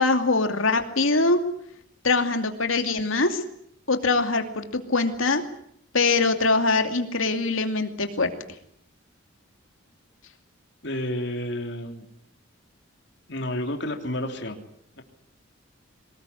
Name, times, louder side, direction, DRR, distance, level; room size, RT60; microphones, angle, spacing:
voice 1, 0.0-1.4 2.0-3.4 3.9-5.4 5.9-8.3, left 3 dB, 85° left, 6 dB, 2.6 m, -23 dB
voice 2, 10.8-12.0 13.3-14.6 15.0-15.1, left 1 dB, 60° left, 4 dB, 3.1 m, -30 dB
24.0 x 19.5 x 9.9 m, 0.69 s
head